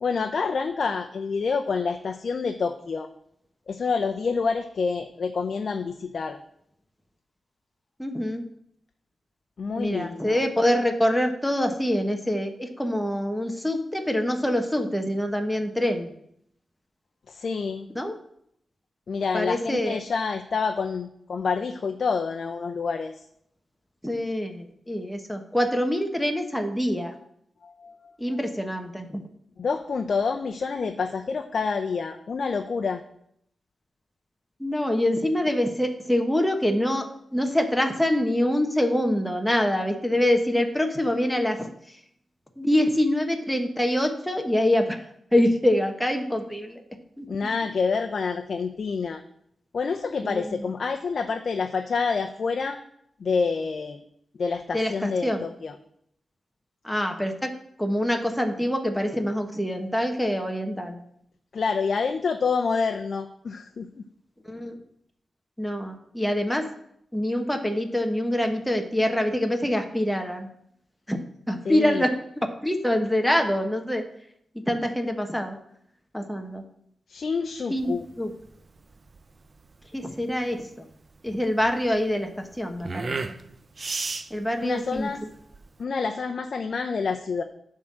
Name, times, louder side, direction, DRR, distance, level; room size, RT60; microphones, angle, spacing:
voice 1, 0.0-3.1 3.7-6.4 9.6-10.4 17.3-17.9 19.1-23.2 27.6-28.1 29.6-33.0 47.3-49.2 49.7-52.8 53.2-54.0 54.4-55.7 61.5-64.0 71.6-72.1 77.1-78.1 84.6-85.2 85.8-87.4, left 5 dB, 65° left, 5 dB, 0.6 m, -27 dB
voice 2, 8.0-8.4 9.8-16.1 17.9-18.2 19.3-20.0 24.0-27.1 28.2-29.3 34.6-42.0 42.6-45.1 45.3-46.8 47.2-47.3 50.2-50.7 54.7-55.5 56.8-61.0 64.5-64.8 65.6-66.7 67.1-70.5 71.1-71.2 71.5-74.0 74.7-75.6 76.1-76.6 77.7-78.3 79.9-80.9 81.2-83.1 84.3-85.1, left 1 dB, 5° left, 3 dB, 1.2 m, -25 dB
sound 1, 77.8-85.8, right 3 dB, 50° right, 0.6 m, -36 dB
11.0 x 3.8 x 7.4 m, 0.72 s
cardioid pair, 70°, 0 cm